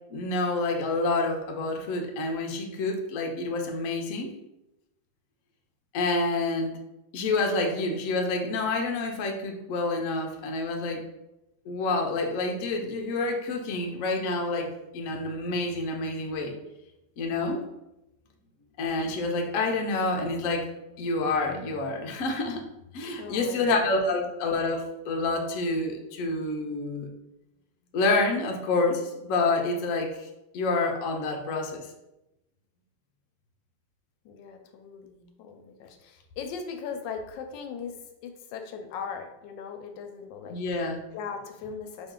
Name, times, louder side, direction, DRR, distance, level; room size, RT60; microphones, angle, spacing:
voice 1, 0.1-4.3 5.9-6.8 7.1-11.0 11.7-16.5 17.2-17.6 18.8-22.6 22.9-27.1 27.9-30.1 30.5-31.9 40.5-41.0, left 3 dB, 60° left, 2 dB, 0.9 m, -28 dB
voice 2, 23.2-24.2 34.2-38.0 38.2-40.6 41.1-42.1, left 6 dB, 85° left, 6 dB, 1.3 m, -39 dB
4.3 x 3.0 x 3.7 m, 0.92 s
omnidirectional pair, 2.0 m